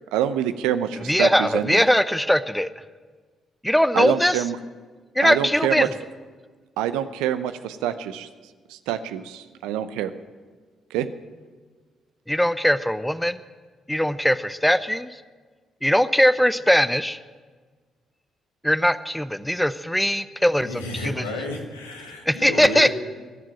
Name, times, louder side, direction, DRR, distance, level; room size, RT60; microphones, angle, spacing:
voice 1, 0.1-1.8 3.9-4.6 5.2-5.9 6.8-8.3 8.7-10.1 10.9-11.1, right 10 dB, 75° right, 11 dB, 0.7 m, -26 dB
voice 2, 1.0-2.7 3.6-4.4 5.2-5.9 12.3-13.4 13.9-15.1 15.8-17.2 18.6-21.2 22.3-22.9, equal, 5° left, 14 dB, 0.8 m, -20 dB
voice 3, 20.6-22.9, left 2 dB, 90° left, 0 dB, 1.8 m, -32 dB
21.5 x 7.4 x 9.0 m, 1.5 s
hypercardioid pair, 45°, 0 cm